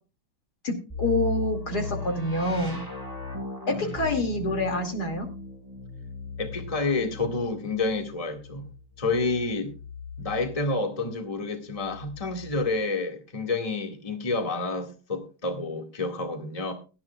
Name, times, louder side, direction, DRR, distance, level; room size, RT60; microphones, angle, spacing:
voice 1, 0.6-2.8 3.7-5.3, left 1 dB, 50° left, 2.9 m, -27 dB
sound 1, 0.9-10.7 11.7-12.8, left 4 dB, 10° right, 5.1 m, -37 dB
voice 2, 6.4-8.6 9.0-9.7 10.2-16.7, left 3 dB, 20° left, 1.9 m, -29 dB
17.5 x 13.5 x 2.4 m
omnidirectional pair, 2.2 m